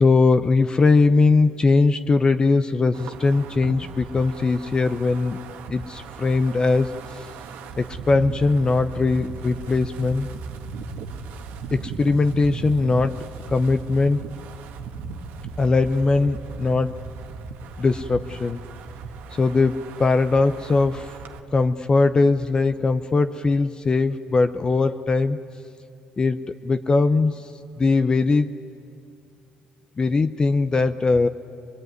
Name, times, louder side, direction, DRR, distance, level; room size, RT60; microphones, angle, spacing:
voice 1, 0.0-5.4 5.7-6.9 7.8-10.3 11.7-13.2 13.5-14.2 15.6-17.0 17.8-18.6 19.4-21.1 21.5-25.4 26.2-27.5 27.8-28.5 30.0-31.3, left 3 dB, 25° left, 10 dB, 0.7 m, -20 dB
Wind, 2.9-21.4, right 4 dB, 80° right, 1.6 m, -37 dB
23.5 x 22.0 x 9.4 m, 2.5 s
cardioid pair, 110°, 3 cm